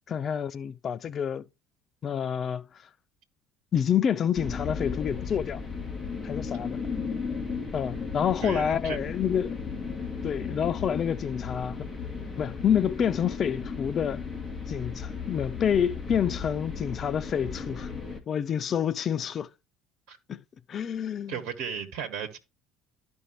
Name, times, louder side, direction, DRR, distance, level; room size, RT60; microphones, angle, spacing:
voice 1, 0.1-1.4 2.0-2.6 3.7-5.6 6.2-6.8 7.7-9.6 10.2-11.8 12.4-14.2 14.7-17.9 18.3-19.5 20.3-20.4 20.7-21.3, left 8 dB, 40° left, 0.5 m, -28 dB
sound 1, 4.3-18.2, left 5 dB, 25° left, 2.5 m, -35 dB
voice 2, 8.4-9.0 20.1-20.2 21.3-22.4, right 7 dB, 60° right, 1.3 m, -35 dB
12.5 x 5.3 x 3.1 m
hypercardioid pair, 60°, 0 cm